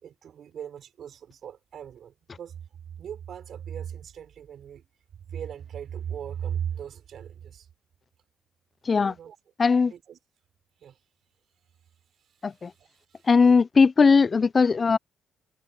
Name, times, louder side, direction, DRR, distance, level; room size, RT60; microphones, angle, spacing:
voice 1, 0.0-2.6 3.0-4.9 5.3-7.7 8.9-9.4 9.9-10.2 10.8-11.0 12.2-13.3, right 9 dB, 65° right, 4.1 m, -38 dB
voice 2, 9.6-9.9 12.4-12.7 13.3-15.0, left 5 dB, 35° left, 0.3 m, -19 dB
cardioid pair, 90°, 0 cm